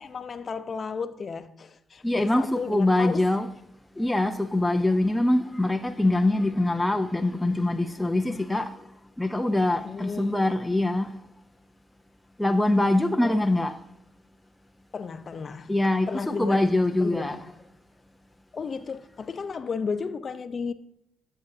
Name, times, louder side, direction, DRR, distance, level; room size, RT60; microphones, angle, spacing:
voice 1, 0.0-3.3 9.8-10.4 13.2-13.3 14.9-16.6 17.0-17.5 18.5-20.7, left 5 dB, 40° left, 0.8 m, -33 dB
voice 2, 2.0-3.5 4.0-8.8 9.2-11.1 12.4-13.7 15.7-17.4, left 1 dB, 5° left, 0.6 m, -24 dB
12.5 x 7.9 x 2.8 m
cardioid pair, 90°, 0 cm